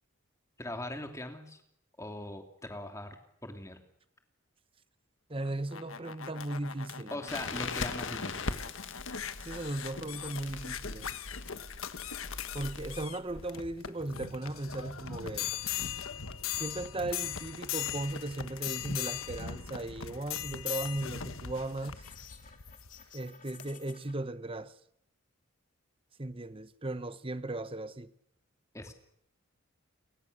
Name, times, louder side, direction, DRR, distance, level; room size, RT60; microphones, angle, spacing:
voice 1, 0.6-1.6 2.0-3.2 3.4-3.8 7.1-8.4 28.7-28.9, left 1 dB, 15° left, 2.8 m, -40 dB
voice 2, 5.3-7.2 9.4-11.1 12.5-15.5 16.5-22.0 23.1-24.8 26.2-28.1, right 2 dB, 25° right, 1.0 m, -37 dB
sound 1, 5.4-23.0 23.6-23.7, left 8 dB, 75° left, 1.4 m, -40 dB
Crackle, 7.3-13.1, left 4 dB, 60° left, 1.9 m, -40 dB
sound 2, 21.9-24.1, left 8 dB, 35° left, 3.1 m, -53 dB
29.5 x 23.0 x 6.7 m
head